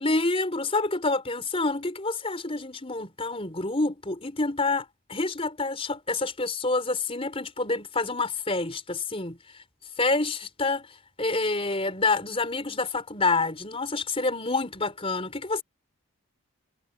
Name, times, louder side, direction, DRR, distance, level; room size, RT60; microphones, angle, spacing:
voice 1, 0.0-9.4 10.0-15.6, left 3 dB, 25° left, 4.3 m, -28 dB
head